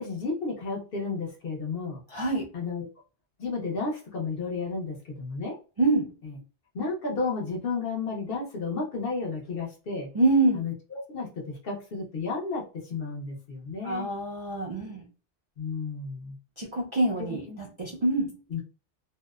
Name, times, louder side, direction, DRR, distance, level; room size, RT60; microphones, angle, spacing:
voice 1, 0.0-2.0 2.5-2.9 3.4-5.5 6.2-6.4 6.7-10.1 10.5-14.1 15.6-16.4 17.3-17.6 18.5-18.6, left 4 dB, 60° left, 0 dB, 0.9 m, -32 dB
voice 2, 2.1-2.5 5.8-6.1 10.1-10.6 13.8-15.0 16.6-18.3, right 2 dB, 45° right, -4 dB, 0.4 m, -25 dB
2.7 x 2.0 x 2.3 m, 0.35 s
omnidirectional pair, 1.2 m